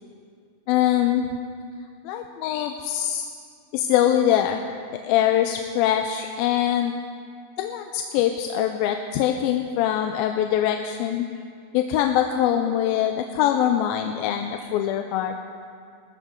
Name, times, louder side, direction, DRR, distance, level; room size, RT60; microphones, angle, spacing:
voice 1, 0.7-1.3 2.1-3.3 3.7-4.6 5.0-6.9 7.6-11.3 11.7-15.3, left 11 dB, 85° left, 5 dB, 2.4 m, -23 dB
20.0 x 13.5 x 3.7 m, 2.2 s
omnidirectional pair, 4.2 m